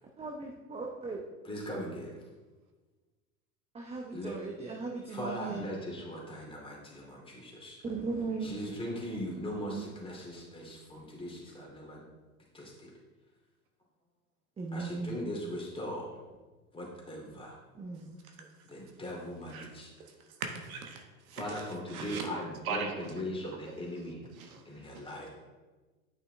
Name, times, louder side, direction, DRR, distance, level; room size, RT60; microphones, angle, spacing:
voice 1, 0.2-1.2 3.7-5.6 7.8-8.6 9.6-9.9 14.6-15.2 17.8-18.2, right 4 dB, 15° right, 0.7 m, -37 dB
voice 2, 1.4-2.1 4.1-4.3 5.1-7.8 8.4-12.0 12.5-12.9 14.7-16.1 16.7-17.6 18.7-19.9 21.4-24.2 24.7-25.3, equal, 10° left, 2.5 m, -39 dB
voice 3, 20.4-22.3 22.6-23.3 24.3-24.6 24.9-25.1, right 5 dB, 65° right, 1.2 m, -40 dB
9.8 x 5.5 x 3.3 m
hypercardioid pair, 85°, 45 cm